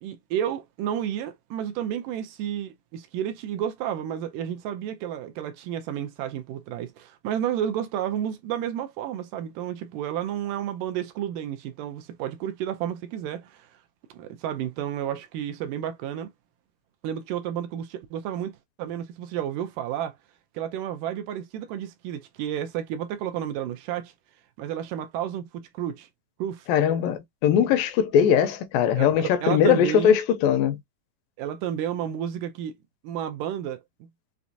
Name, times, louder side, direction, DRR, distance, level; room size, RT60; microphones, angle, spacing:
voice 1, 0.0-13.7 14.1-16.3 17.0-20.2 20.5-24.1 24.6-26.1 26.4-26.7 29.0-30.2 31.4-32.8 33.0-34.1, right 10 dB, 80° right, 2.0 m, -31 dB
voice 2, 26.7-30.8, left 8 dB, 80° left, 2.3 m, -21 dB
6.0 x 2.4 x 2.7 m
omnidirectional pair, 4.2 m